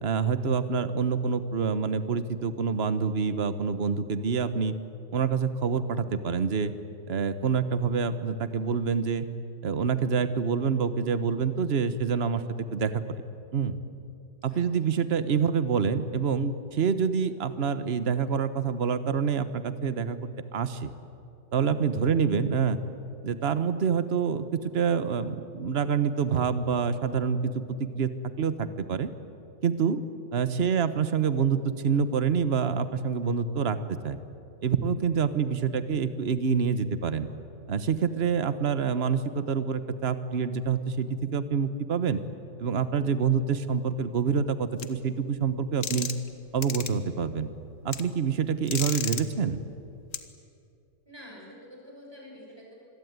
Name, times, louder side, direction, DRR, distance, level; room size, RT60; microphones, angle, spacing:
voice 1, 0.0-4.7 5.1-6.7 7.1-9.3 9.6-12.4 12.7-13.0 13.5-13.8 14.4-20.9 21.5-22.8 23.2-27.5 27.8-28.1 28.4-29.1 29.6-30.0 30.3-34.2 34.6-37.3 37.7-42.2 42.6-46.1 46.5-47.5 47.8-49.6, right 6 dB, 40° right, 12 dB, 1.2 m, -27 dB
sound 1, 44.8-44.9 45.8-46.3 46.6-46.9 47.9-48.0 48.7-49.2 50.1-50.2, left 6 dB, 45° left, 1.5 m, -32 dB
voice 2, 51.1-52.7, equal, 10° right, -3 dB, 7.1 m, -48 dB
26.5 x 21.5 x 9.5 m, 2.6 s
omnidirectional pair, 2.0 m